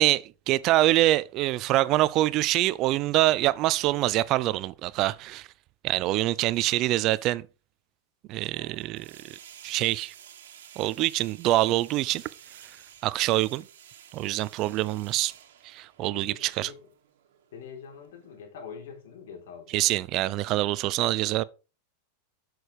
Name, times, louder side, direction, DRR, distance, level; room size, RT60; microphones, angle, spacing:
voice 1, 0.0-5.5 5.8-7.4 8.3-10.1 10.8-12.3 13.0-13.7 14.1-15.3 15.6-16.7 19.7-21.4, right 16 dB, 40° right, 0.4 m, -25 dB
sound 1, 8.5-18.4, right 9 dB, 85° right, 1.7 m, -52 dB
voice 2, 16.0-16.8 17.5-19.9 20.4-20.5, left 6 dB, 75° left, 3.8 m, -44 dB
7.7 x 6.5 x 4.9 m
supercardioid pair, 145°, 0 cm